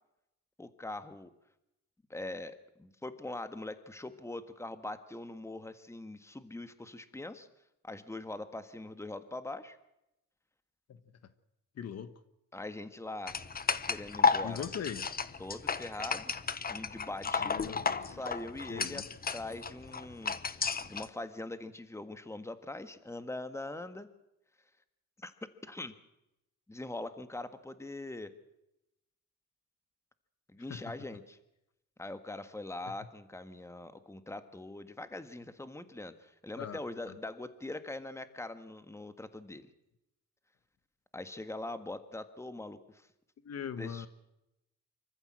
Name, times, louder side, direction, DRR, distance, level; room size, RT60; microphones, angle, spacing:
voice 1, 0.6-1.3 2.1-7.5 7.8-9.8 12.5-13.4 13.9-14.7 15.4-16.3 16.7-17.7 18.0-19.0 19.3-24.1 25.2-25.3 25.6-25.9 26.7-28.3 30.5-31.4 32.0-39.7 41.1-43.1 43.8-44.1, left 2 dB, 10° left, 10 dB, 1.7 m, -42 dB
voice 2, 11.7-12.1 14.4-15.2 17.4-18.2 18.7-19.0 30.7-30.9 36.6-37.1 43.4-44.1, left 8 dB, 55° left, 12 dB, 1.4 m, -41 dB
sound 1, 13.3-21.1, left 5 dB, 30° left, 1.1 m, -33 dB
25.5 x 14.5 x 7.6 m, 0.89 s
cardioid pair, 90°, 30 cm